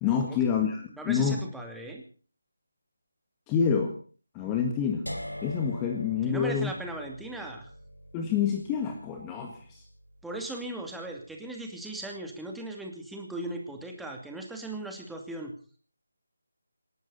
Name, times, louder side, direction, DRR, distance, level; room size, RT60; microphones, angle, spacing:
voice 1, 0.0-1.4 3.5-4.0 4.3-5.1 5.4-6.7 8.1-9.8, left 7 dB, 15° left, 4 dB, 1.7 m, -27 dB
voice 2, 1.0-2.0 6.3-7.7 10.2-15.5, right 2 dB, ahead, 1 dB, 2.6 m, -38 dB
sound 1, 5.1-11.0, equal, 90° left, 3.8 m, -43 dB
27.5 x 12.0 x 4.1 m, 0.41 s
figure-of-eight pair, 155°, 0 cm